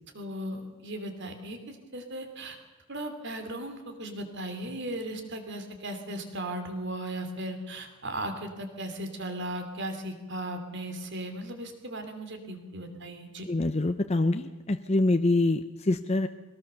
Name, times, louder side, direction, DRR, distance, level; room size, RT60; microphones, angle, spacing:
voice 1, 0.1-2.6 2.9-13.5, right 1 dB, 55° right, 6 dB, 2.9 m, -37 dB
voice 2, 13.5-16.3, left 2 dB, 30° left, 8 dB, 0.6 m, -25 dB
22.5 x 18.0 x 6.8 m, 1.2 s
head